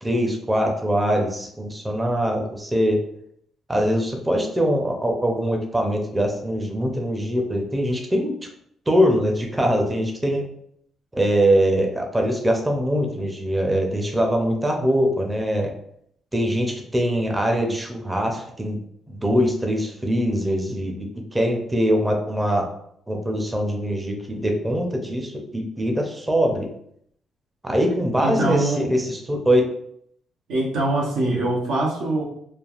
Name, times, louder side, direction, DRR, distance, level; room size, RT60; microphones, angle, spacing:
voice 1, 0.0-3.0 3.7-8.4 8.9-10.4 11.1-15.7 16.3-18.8 19.1-22.7 23.1-26.7 27.6-29.7, equal, 15° right, 2 dB, 0.5 m, -22 dB
voice 2, 28.2-28.9 30.5-32.2, right 2 dB, 90° right, -2 dB, 0.8 m, -23 dB
3.2 x 2.3 x 2.4 m, 0.70 s
cardioid pair, 90°, 0 cm